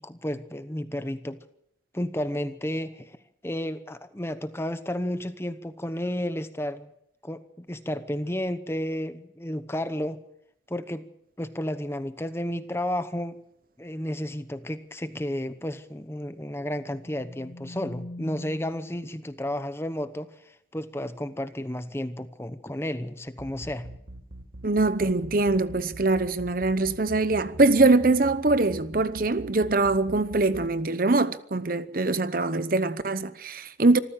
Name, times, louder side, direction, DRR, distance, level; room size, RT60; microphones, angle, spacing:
voice 1, 0.0-1.4 1.9-3.2 3.4-6.9 7.2-10.2 10.7-11.1 11.4-13.4 13.8-23.9, left 1 dB, 15° left, 0.9 m, -32 dB
sound 1, 16.6-19.2, left 1 dB, 70° left, 1.1 m, -43 dB
sound 2, 23.4-30.7, right 1 dB, 70° right, 2.3 m, -42 dB
voice 2, 24.6-34.0, right 2 dB, 45° right, 0.8 m, -23 dB
25.5 x 14.5 x 7.6 m
head